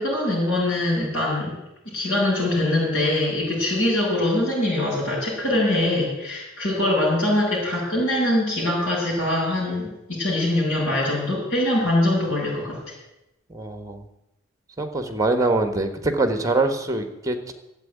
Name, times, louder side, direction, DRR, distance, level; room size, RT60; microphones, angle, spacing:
voice 1, 0.0-1.5 1.9-12.8, left 1 dB, 85° left, -10 dB, 6.7 m, -23 dB
voice 2, 13.5-14.0 14.8-17.5, right 2 dB, 15° right, 8 dB, 1.4 m, -24 dB
12.5 x 8.2 x 9.4 m, 0.90 s
head